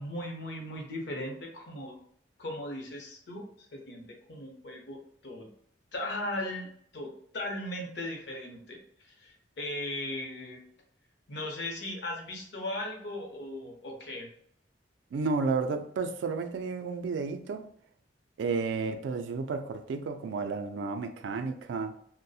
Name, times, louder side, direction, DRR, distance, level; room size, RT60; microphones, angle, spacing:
voice 1, 0.0-2.0 2.4-3.5 3.7-5.0 5.2-5.5 5.9-8.8 9.0-10.6 11.3-14.3, left 1 dB, 65° left, 0.6 m, -37 dB
voice 2, 15.1-17.6 18.4-22.0, right 4 dB, 75° right, 0.3 m, -32 dB
2.3 x 2.0 x 2.6 m
head